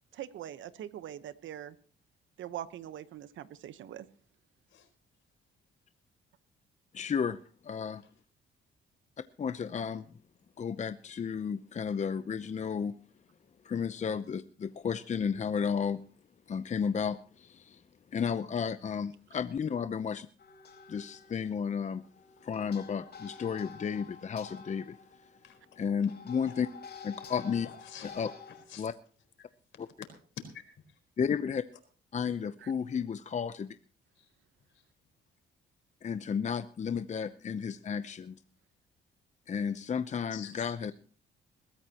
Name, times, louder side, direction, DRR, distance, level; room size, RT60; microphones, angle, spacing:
voice 1, 0.1-1.8 2.4-4.1 32.6-32.7, right 11 dB, 75° right, 13 dB, 1.1 m, -42 dB
voice 2, 6.9-7.4 7.6-8.0 9.4-10.1 10.6-13.0 13.6-16.0 16.5-17.8 18.1-20.3 20.9-22.0 22.4-25.0 25.8-26.7 27.0-27.7 28.0-28.3 28.8-28.9 29.8-29.9 31.2-31.6 32.1-33.7 36.0-38.4 39.5-40.9, left 6 dB, 35° left, 12 dB, 0.7 m, -33 dB
sound 1, 20.4-28.6, left 5 dB, 55° left, 4.8 m, -50 dB
voice 3, 27.2-28.9 30.4-30.6 34.2-34.3 40.3-40.7, left 8 dB, 75° left, 6 dB, 4.4 m, -48 dB
22.0 x 14.0 x 3.0 m, 0.40 s
cardioid pair, 90°, 20 cm